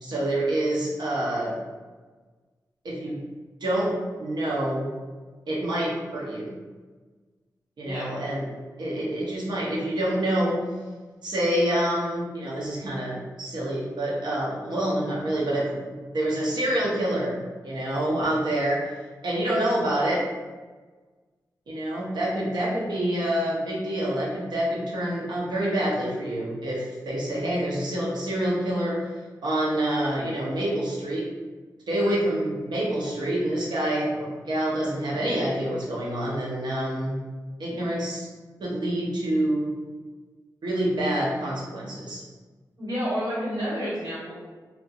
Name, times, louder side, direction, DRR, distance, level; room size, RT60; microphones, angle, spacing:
voice 1, 0.0-1.6 2.8-3.2 3.6-4.9 5.5-6.5 7.8-8.4 8.8-10.6 11.2-18.9 19.2-20.2 21.7-29.1 29.4-31.3 31.9-37.2 37.6-38.3 38.6-39.7 40.6-42.2, right 1 dB, 85° right, -5 dB, 0.7 m, -27 dB
voice 2, 42.8-44.4, equal, 60° right, -11 dB, 1.1 m, -29 dB
2.7 x 2.0 x 2.3 m, 1.4 s
wide cardioid pair, 125°, 7 cm